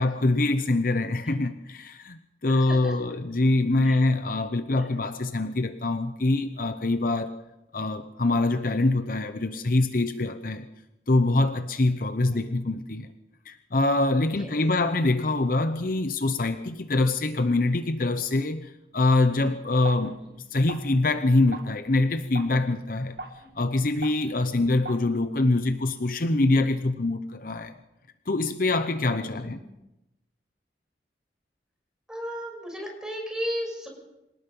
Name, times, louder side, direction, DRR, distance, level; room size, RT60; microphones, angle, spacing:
voice 1, 0.0-7.3 7.7-10.7 11.1-13.1 13.5-20.2 20.5-23.2 23.6-27.7 28.3-29.6, left 2 dB, 50° left, 9 dB, 0.9 m, -24 dB
voice 2, 2.5-2.9 3.8-4.0 12.3-12.4 14.4-14.5 20.2-20.3 23.4-23.5 24.5-24.6 29.3-29.6 32.1-33.9, equal, 5° right, 0 dB, 6.6 m, -35 dB
sound 1, 19.8-25.0, right 2 dB, 65° right, 1.9 m, -43 dB
26.5 x 18.5 x 5.5 m, 0.92 s
head